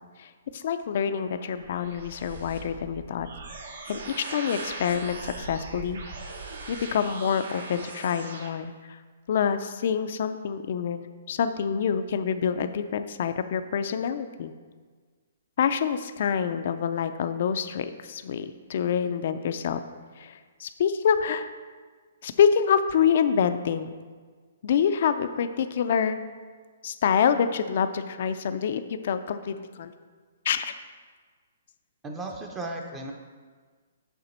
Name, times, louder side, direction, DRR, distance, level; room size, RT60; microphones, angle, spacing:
voice 1, 0.2-3.3 3.9-6.0 6.7-9.0 9.3-14.5 15.6-19.8 20.2-21.5 22.2-23.9 24.6-26.2 26.8-29.9 30.4-30.7, left 7 dB, 55° left, 10 dB, 0.4 m, -26 dB
sound 1, 0.8-8.5, right 3 dB, 70° right, 1.0 m, -40 dB
voice 2, 32.0-33.1, right 2 dB, 15° right, 2 dB, 0.6 m, -35 dB
6.7 x 5.8 x 4.3 m, 1.5 s
hypercardioid pair, 160°, 0 cm